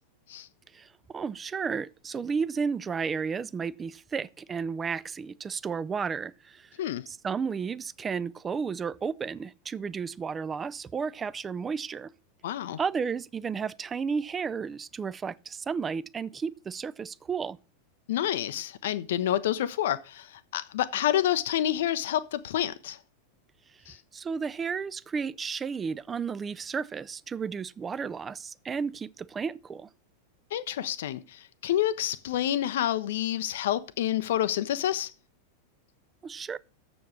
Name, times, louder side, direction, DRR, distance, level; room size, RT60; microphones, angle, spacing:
voice 1, 0.7-6.7 7.1-12.1 12.8-17.6 24.1-29.9 36.2-36.6, right 5 dB, 20° right, 0.4 m, -33 dB
voice 2, 12.4-12.8 18.1-23.0 23.9-24.0 30.5-35.1, left 12 dB, 55° left, 0.5 m, -28 dB
7.0 x 7.0 x 6.2 m
figure-of-eight pair, 90°, 0 cm